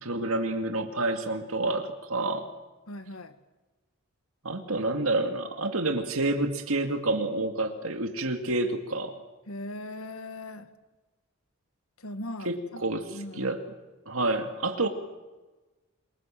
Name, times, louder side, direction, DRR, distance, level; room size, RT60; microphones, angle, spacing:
voice 1, 0.0-2.5 4.4-9.2 12.4-13.6 14.1-14.9, right 2 dB, 80° right, 5 dB, 2.3 m, -29 dB
voice 2, 2.9-3.4 9.5-10.7 12.0-12.8 13.1-13.5 14.8-14.9, left 1 dB, 80° left, 10 dB, 2.0 m, -39 dB
29.0 x 23.5 x 7.7 m, 1.2 s
head